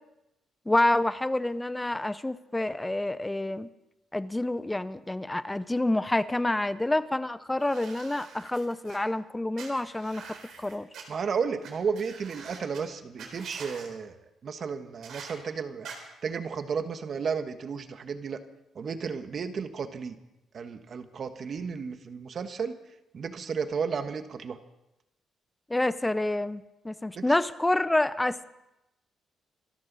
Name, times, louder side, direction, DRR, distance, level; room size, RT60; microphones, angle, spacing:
voice 1, 0.7-3.7 4.1-10.3 10.6-10.9 25.7-28.4, left 1 dB, 10° left, 15 dB, 0.7 m, -28 dB
sound 1, 7.6-9.0 9.6-11.0 11.6-11.7 12.0-12.8 13.2-13.9 15.0-15.3 15.8-16.0, right 6 dB, 75° right, 3.8 m, -45 dB
voice 2, 11.1-14.2 14.4-15.9 16.2-18.4 18.7-20.2 20.5-22.8 23.1-24.6 27.1-27.2, right 6 dB, 50° right, 9 dB, 1.5 m, -33 dB
26.0 x 13.5 x 4.1 m, 0.93 s
cardioid pair, 90°, 0 cm